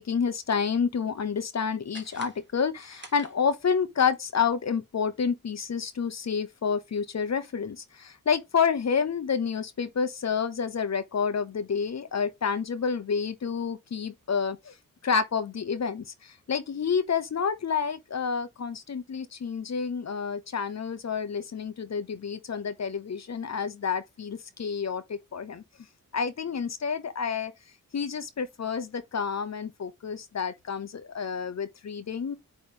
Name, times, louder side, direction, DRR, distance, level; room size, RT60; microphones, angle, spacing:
voice 1, 0.0-14.7 15.0-25.6 26.1-27.5 27.9-32.4, left 6 dB, 50° left, 1.0 m, -29 dB
sound 1, 1.9-3.8, right 3 dB, 35° right, 1.5 m, -49 dB
8.9 x 3.4 x 3.5 m
wide cardioid pair, 115°, 34 cm